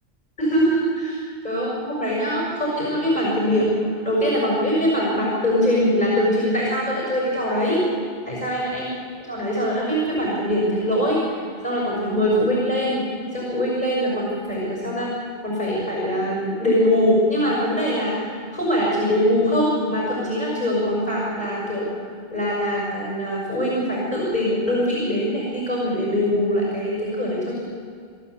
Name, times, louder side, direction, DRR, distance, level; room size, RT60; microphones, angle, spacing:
voice 1, 0.4-1.2 1.4-7.8 8.3-8.9 9.3-15.1 15.4-18.1 18.5-21.9 22.3-27.6, equal, 45° left, -4 dB, 6.5 m, -22 dB
28.0 x 13.5 x 8.3 m, 2.2 s
omnidirectional pair, 1.1 m